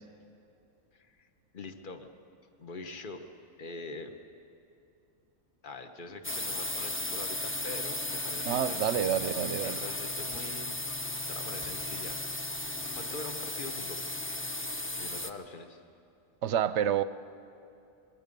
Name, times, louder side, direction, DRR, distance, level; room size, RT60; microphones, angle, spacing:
voice 1, 0.9-1.3 1.5-2.1 2.6-3.2 3.6-4.1 5.6-8.9 9.6-10.7 11.3-12.2 12.5-14.0 14.9-15.8, left 3 dB, 40° left, 6 dB, 1.3 m, -44 dB
sound 1, 6.2-15.3, left 2 dB, 20° left, 0.3 m, -35 dB
voice 2, 8.5-9.8 16.4-17.0, right 9 dB, 65° right, 14 dB, 0.9 m, -28 dB
25.5 x 22.5 x 5.3 m, 2.7 s
omnidirectional pair, 1.4 m